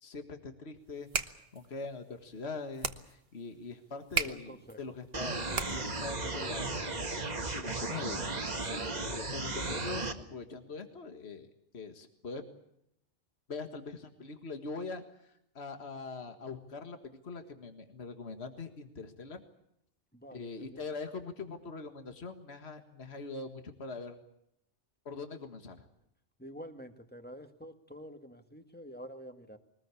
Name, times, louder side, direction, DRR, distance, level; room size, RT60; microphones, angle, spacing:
voice 1, 0.0-5.4 5.7-6.8 7.6-12.4 13.5-17.0 17.2-19.4 20.3-24.2 25.1-25.8, left 4 dB, 65° left, 6 dB, 2.0 m, -42 dB
sound 1, 0.8-6.1, right 5 dB, 55° right, 1.5 m, -38 dB
voice 2, 4.3-5.0 20.1-20.9 26.4-29.6, equal, 10° left, 6 dB, 1.8 m, -48 dB
sound 2, 5.1-10.1, right 2 dB, 35° right, 1.7 m, -35 dB
22.5 x 20.0 x 8.4 m, 0.78 s
omnidirectional pair, 1.2 m